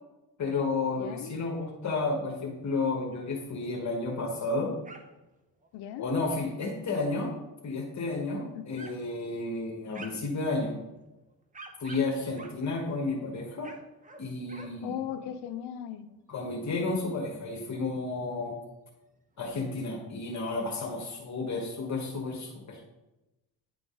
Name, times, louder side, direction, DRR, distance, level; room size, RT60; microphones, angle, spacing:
voice 1, 0.4-4.7 6.0-7.3 7.6-10.7 11.8-13.7 14.2-15.0 16.3-18.6 19.4-22.8, left 3 dB, 45° left, 1 dB, 1.4 m, -32 dB
voice 2, 1.0-1.3 5.7-6.1 8.5-8.9 14.8-16.1, left 10 dB, 85° left, 11 dB, 0.6 m, -38 dB
sound 1, 4.8-5.3 5.6-5.7 6.3-6.9 7.5-7.7 8.1-8.2 8.8-9.0 9.5-10.4 11.0-13.0 13.5-14.8 15.1-15.4 15.6-15.7 16.1-16.2 16.8-17.7 18.0-18.1 18.4-18.5 19.4-19.5 19.7-19.8 20.0-20.6, right 2 dB, 20° right, 0.8 m, -49 dB
9.3 x 3.9 x 3.8 m, 1.0 s
cardioid pair, 105°, 39 cm